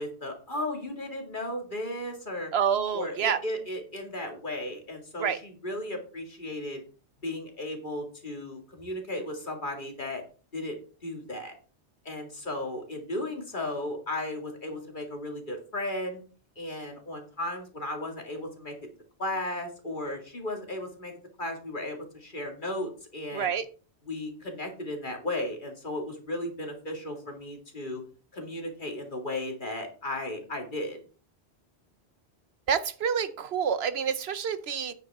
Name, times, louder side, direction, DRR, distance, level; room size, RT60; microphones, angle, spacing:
voice 1, 0.0-2.5 2.9-6.8 7.2-10.2 10.5-10.8 11.0-11.5 12.1-16.2 16.6-18.7 19.2-23.5 24.1-28.0 28.3-31.0, left 1 dB, 50° left, 2 dB, 2.3 m, -35 dB
voice 2, 2.5-3.4 5.2-5.4 23.3-23.7 32.7-34.9, right 7 dB, 70° right, 13 dB, 1.0 m, -28 dB
9.1 x 8.4 x 3.6 m, 0.38 s
omnidirectional pair, 1.1 m